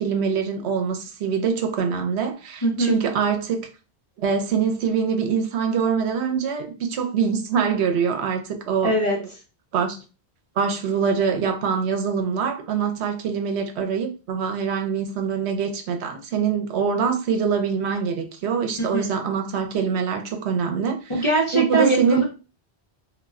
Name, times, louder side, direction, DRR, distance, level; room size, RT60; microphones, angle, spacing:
voice 1, 0.0-3.7 4.2-9.2 9.7-10.0 10.6-21.1 21.5-22.2, right 6 dB, 75° right, 0.8 m, -24 dB
voice 2, 2.6-3.0 8.8-9.2 18.8-19.1 21.1-22.2, right 1 dB, 35° left, 0.6 m, -22 dB
2.2 x 2.1 x 3.4 m
omnidirectional pair, 1.1 m